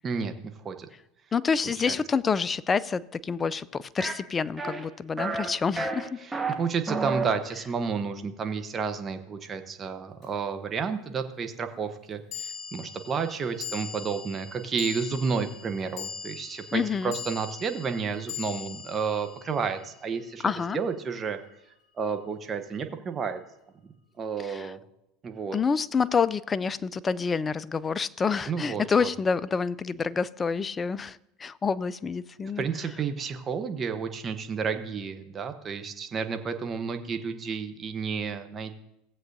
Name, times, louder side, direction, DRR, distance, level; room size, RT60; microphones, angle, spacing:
voice 1, 0.0-0.9 1.6-2.0 6.2-21.4 22.0-23.4 24.2-24.8 25.2-25.6 28.5-29.1 32.6-38.7, right 5 dB, 30° right, 1.0 m, -31 dB
voice 2, 1.3-6.2 16.7-17.1 20.4-20.8 24.5-24.7 25.5-32.6, left 5 dB, 25° left, 0.4 m, -28 dB
sound 1, 4.0-4.1 4.6-4.9 5.2-5.5 5.8-6.5 6.9-7.3, right 4 dB, 10° right, 1.3 m, -30 dB
sound 2, 10.2-10.3 12.3-20.7, left 7 dB, 40° left, 2.8 m, -41 dB
17.5 x 7.9 x 2.7 m
hypercardioid pair, 90°, 0 cm